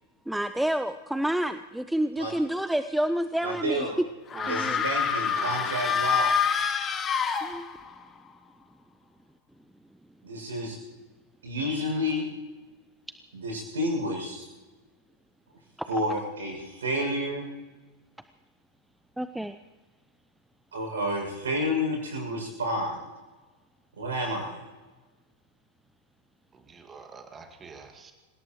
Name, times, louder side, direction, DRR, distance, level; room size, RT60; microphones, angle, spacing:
voice 1, 0.3-3.9 4.5-4.8 7.4-7.7 19.2-19.6, right 1 dB, 5° right, 12 dB, 0.5 m, -29 dB
voice 2, 3.4-3.9 4.5-6.3 10.2-10.8 11.4-12.3 13.3-14.4 15.9-17.5 20.7-23.0 24.0-24.5, equal, 65° right, 1 dB, 6.7 m, -30 dB
sound 1, 4.3-8.0, left 6 dB, 25° left, 1.5 m, -27 dB
voice 3, 4.3-4.9 5.3-6.1 26.5-28.1, right 4 dB, 20° right, 5 dB, 2.0 m, -45 dB
27.0 x 17.0 x 3.1 m, 1.3 s
figure-of-eight pair, 90°, 0 cm